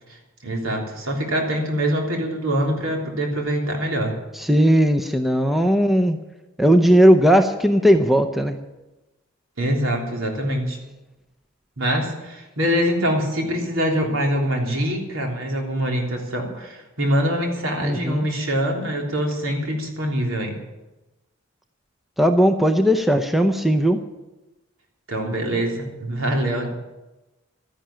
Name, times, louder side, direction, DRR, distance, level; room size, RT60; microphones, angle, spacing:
voice 1, 0.4-4.2 9.6-10.8 11.8-20.6 25.1-26.7, equal, 70° right, 1 dB, 3.5 m, -24 dB
voice 2, 4.3-6.2 6.6-8.6 17.8-18.3 22.2-24.0, equal, ahead, 6 dB, 0.7 m, -17 dB
13.0 x 10.5 x 8.8 m, 1.0 s
head